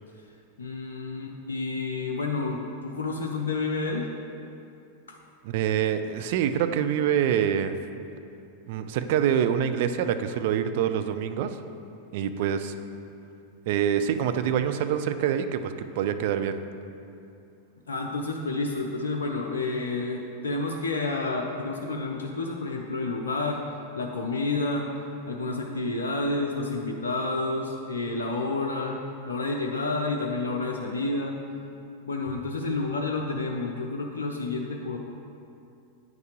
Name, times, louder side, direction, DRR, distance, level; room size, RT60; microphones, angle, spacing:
voice 1, 0.6-4.1 5.1-5.2 17.9-23.6 23.9-24.9 25.3-31.3 32.1-35.0, left 3 dB, 70° left, 1 dB, 0.5 m, -30 dB
voice 2, 5.4-7.8 8.7-11.6 12.1-12.7 13.7-16.6, right 9 dB, 50° right, 9 dB, 0.3 m, -26 dB
9.0 x 5.6 x 3.0 m, 2.6 s
figure-of-eight pair, 90°, 0 cm